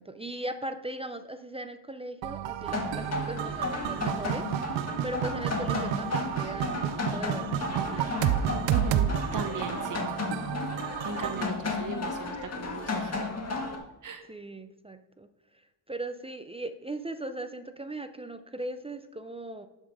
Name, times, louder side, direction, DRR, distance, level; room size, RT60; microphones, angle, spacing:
voice 1, 0.0-8.1 14.3-15.3 15.5-19.7, right 2 dB, 15° right, 9 dB, 0.4 m, -39 dB
sound 1, 2.2-11.5, right 11 dB, 70° right, 0.7 m, -31 dB
sound 2, 2.7-13.8, left 3 dB, 35° left, 1.7 m, -34 dB
voice 2, 8.7-10.0 11.0-13.3 14.0-14.2, right 5 dB, 40° right, 6 dB, 0.9 m, -38 dB
11.0 x 5.5 x 4.7 m, 1.0 s
cardioid pair, 105°, 47 cm